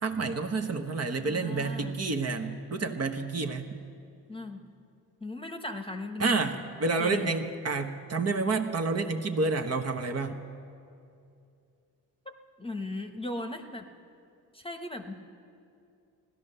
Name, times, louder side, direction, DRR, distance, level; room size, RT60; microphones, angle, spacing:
voice 1, 0.0-3.7 6.2-10.3, right 3 dB, 35° right, 5 dB, 1.2 m, -29 dB
voice 2, 1.2-2.0 4.3-4.6 5.2-6.4 7.0-7.4 12.2-13.9 14.5-15.1, left 2 dB, 15° left, 5 dB, 1.1 m, -37 dB
16.0 x 11.5 x 6.7 m, 2.5 s
supercardioid pair, 70°, 41 cm